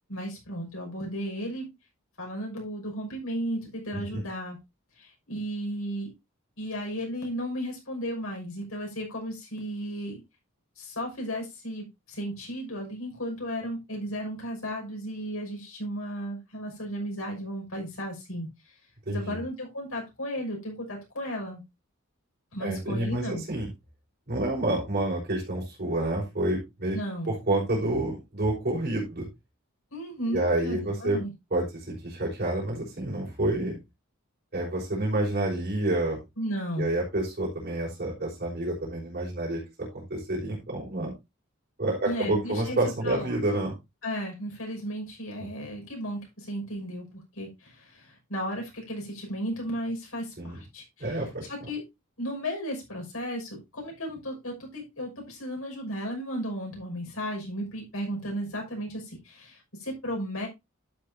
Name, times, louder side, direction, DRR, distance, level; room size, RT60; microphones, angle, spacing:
voice 1, 0.1-1.7 2.2-4.6 5.0-6.1 6.6-10.2 10.8-18.5 19.1-21.6 22.5-23.4 26.9-27.3 29.9-31.3 36.4-36.9 42.0-43.4 44.0-51.8 52.2-60.5, equal, 80° left, 1 dB, 6.1 m, -34 dB
voice 2, 3.9-4.2 19.0-19.4 22.6-23.7 24.3-27.0 27.3-29.3 30.3-31.2 31.5-33.8 34.5-36.2 36.8-41.1 41.8-43.7 45.4-45.5 50.4-50.6 51.0-51.5, right 1 dB, 45° right, -5 dB, 5.1 m, -29 dB
12.0 x 8.6 x 2.8 m, 0.23 s
head